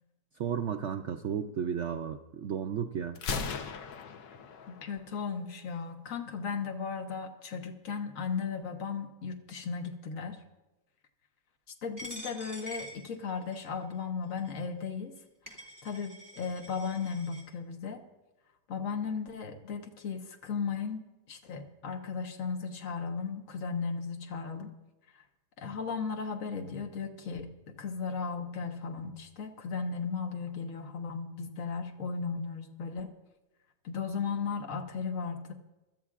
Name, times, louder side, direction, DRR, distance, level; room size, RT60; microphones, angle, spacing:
voice 1, 0.4-3.2, right 8 dB, 75° right, 6 dB, 0.6 m, -33 dB
Gunshot gunfire, 3.2-5.1, left 5 dB, 85° left, 1.5 m, -37 dB
voice 2, 4.7-10.4 11.8-15.2 15.8-18.0 18.7-24.7 25.1-25.2 25.6-33.1 33.8-35.5, left 5 dB, 50° left, 3 dB, 1.5 m, -36 dB
Coin (dropping), 12.0-13.7 14.4-14.5 15.2-15.3 15.5-17.4, equal, 10° right, 2.6 m, -46 dB
24.5 x 13.0 x 2.4 m, 1.1 s
omnidirectional pair, 1.8 m